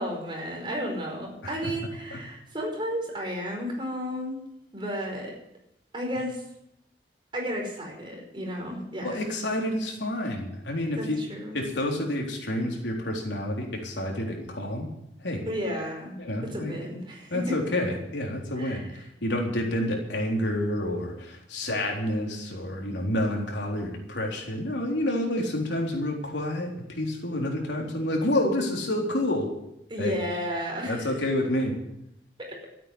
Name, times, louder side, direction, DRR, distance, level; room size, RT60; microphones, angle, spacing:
voice 1, 0.0-4.4 4.7-5.3 5.9-6.4 7.3-9.2 11.0-11.6 15.4-17.6 18.6-18.9 29.9-31.2 32.4-32.6, equal, 30° right, 0 dB, 5.0 m, -33 dB
voice 2, 9.0-11.2 11.5-14.9 15.2-15.4 16.2-16.7 17.3-18.9 19.2-29.5 30.0-30.2 30.9-31.7, left 1 dB, 85° left, 0 dB, 3.8 m, -29 dB
13.5 x 9.1 x 9.9 m, 0.82 s
head